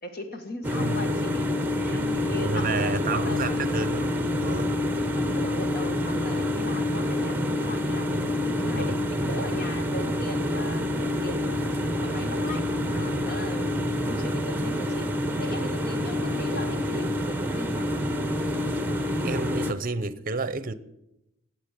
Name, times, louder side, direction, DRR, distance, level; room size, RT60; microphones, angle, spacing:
voice 1, 0.0-3.9 5.2-13.8 14.1-17.9, left 1 dB, 45° left, 1.7 m, -39 dB
sound 1, 0.6-19.7, left 1 dB, 10° right, 1.0 m, -27 dB
voice 2, 0.8-1.1 1.9-4.8 8.6-8.9 12.9-13.1 16.3-16.4 19.2-20.7, right 3 dB, 40° right, 0.7 m, -31 dB
17.5 x 8.1 x 6.7 m
head